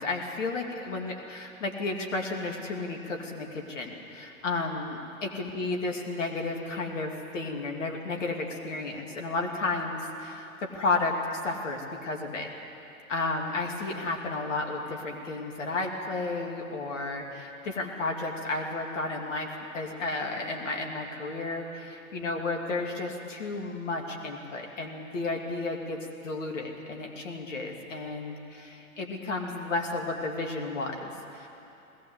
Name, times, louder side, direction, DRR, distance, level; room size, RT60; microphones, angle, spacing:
voice 1, 0.0-12.5 13.1-31.5, left 3 dB, 60° left, 1 dB, 3.0 m, -32 dB
21.0 x 19.0 x 8.3 m, 2.8 s
figure-of-eight pair, 105°, 42 cm